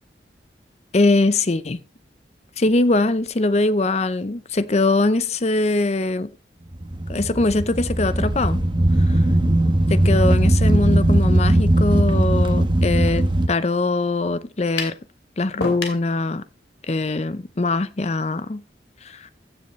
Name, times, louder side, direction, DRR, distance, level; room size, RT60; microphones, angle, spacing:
voice 1, 0.9-1.8 2.6-6.3 7.1-8.6 9.9-14.9 15.4-16.4 16.9-18.6 19.0-19.3, left 2 dB, 35° left, 0.6 m, -22 dB
sound 1, 6.7-13.5, right 1 dB, 25° right, 1.1 m, -19 dB
sound 2, 14.8-15.0 15.6-16.1, left 3 dB, 80° left, 2.7 m, -28 dB
15.5 x 7.1 x 3.1 m
head